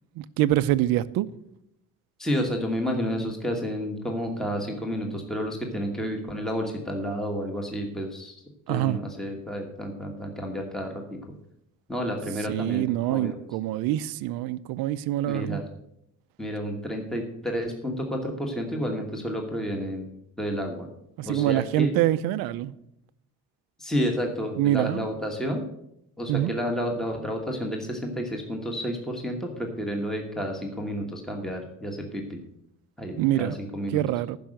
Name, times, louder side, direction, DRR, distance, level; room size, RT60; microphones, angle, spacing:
voice 1, 0.2-1.3 8.7-9.0 12.5-15.6 21.2-22.7 24.6-25.1 26.3-26.5 33.2-33.6 33.9-34.4, right 14 dB, 85° right, 0.7 m, -25 dB
voice 2, 2.2-8.4 8.7-11.0 11.9-13.4 15.3-15.6 16.4-20.1 20.4-20.9 21.2-21.9 23.8-25.6 26.2-32.4 33.0-34.0, equal, ahead, 1.3 m, -30 dB
10.5 x 6.3 x 7.6 m
cardioid pair, 155°, 34 cm